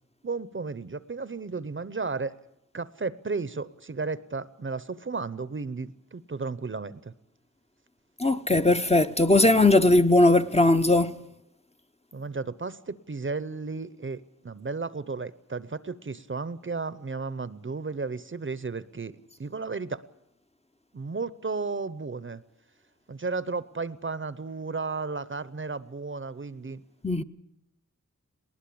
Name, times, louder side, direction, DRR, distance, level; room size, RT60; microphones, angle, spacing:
voice 1, 0.2-2.4 2.7-7.1 12.1-20.0 20.9-22.4 23.1-26.8, right 4 dB, 40° right, 0.7 m, -34 dB
voice 2, 8.2-11.1 27.0-27.2, left 2 dB, 20° left, 0.7 m, -19 dB
19.5 x 19.0 x 8.5 m
wide cardioid pair, 80°, 31 cm